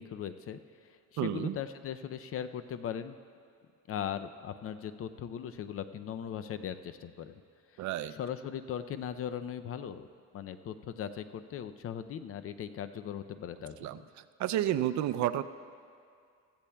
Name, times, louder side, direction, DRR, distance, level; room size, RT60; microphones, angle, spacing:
voice 1, 0.0-3.2 3.9-7.4 7.7-10.1 10.3-13.9, left 9 dB, 45° left, 11 dB, 0.5 m, -39 dB
voice 2, 1.2-1.6 7.8-8.1 13.8-14.0 14.4-15.4, right 12 dB, 60° right, 13 dB, 0.5 m, -30 dB
15.5 x 14.5 x 2.3 m, 2.3 s
cardioid pair, 120°, 32 cm